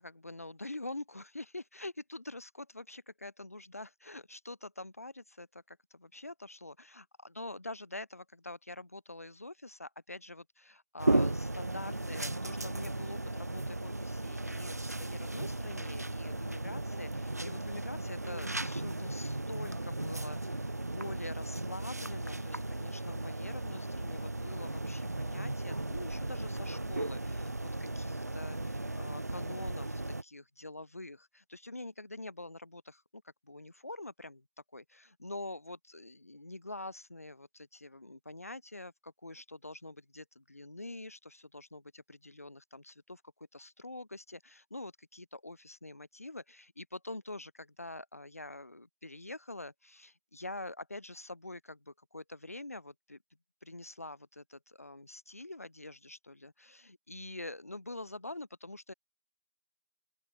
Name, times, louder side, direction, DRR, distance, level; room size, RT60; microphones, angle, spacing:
voice 1, 0.0-34.5 34.7-43.2 43.5-53.2 53.6-58.9, left 2 dB, 55° left, 2.3 m, -46 dB
sound 1, 11.0-30.2, right 2 dB, 65° right, 1.7 m, -36 dB
open air
figure-of-eight pair, 180°, 9 cm